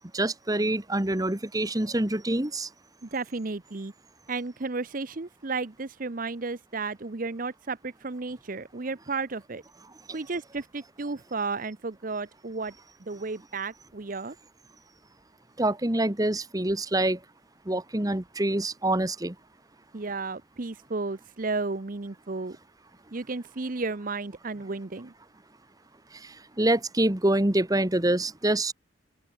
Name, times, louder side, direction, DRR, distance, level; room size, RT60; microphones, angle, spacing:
voice 1, 0.1-2.7 15.6-17.2 17.7-19.3 26.1-28.7, right 1 dB, 20° right, 1.2 m, -26 dB
voice 2, 3.0-3.9 4.3-9.6 10.1-12.7 13.1-14.4 19.9-22.6 23.1-25.1, right 3 dB, 40° right, 0.8 m, -33 dB
open air
head